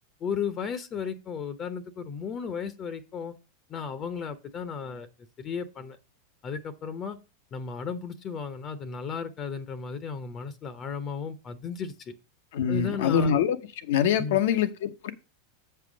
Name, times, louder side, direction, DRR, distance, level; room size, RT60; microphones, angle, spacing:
voice 1, 0.2-3.3 3.7-5.1 5.4-6.0 6.4-7.2 7.5-12.1 12.7-13.3 14.2-14.4, left 6 dB, 35° left, 0.9 m, -34 dB
voice 2, 12.5-13.6 13.9-15.1, left 8 dB, 70° left, 0.9 m, -24 dB
7.5 x 5.7 x 5.0 m
hypercardioid pair, 100°, 0 cm